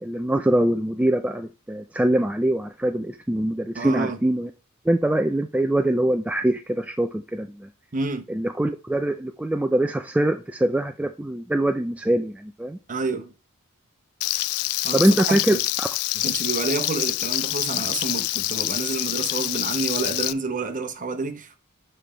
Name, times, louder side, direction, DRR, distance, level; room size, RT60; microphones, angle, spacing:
voice 1, 0.0-4.5 4.9-7.7 8.3-12.8 14.9-15.9, right 1 dB, 5° right, 0.3 m, -23 dB
voice 2, 3.7-4.2 7.9-8.2 12.9-13.3 14.8-15.6 16.1-21.6, right 4 dB, 40° right, 0.8 m, -29 dB
Frying (food), 14.2-20.3, left 17 dB, 85° left, 0.3 m, -26 dB
7.1 x 3.3 x 4.3 m
head